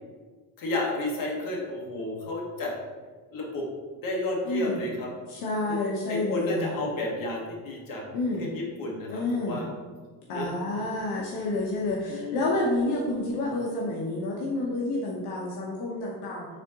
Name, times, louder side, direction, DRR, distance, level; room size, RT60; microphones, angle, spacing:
voice 1, 0.6-2.7 3.3-3.7 4.0-5.1 6.1-8.0 8.4-9.7 10.3-10.5 12.1-12.5, left 2 dB, 60° left, -2 dB, 1.1 m, -31 dB
voice 2, 4.4-4.8 5.3-6.8 8.1-8.5 9.1-9.6 10.3-16.5, left 2 dB, 80° left, -4 dB, 0.8 m, -29 dB
4.2 x 3.6 x 2.8 m, 1.4 s
cardioid pair, 125°, 38 cm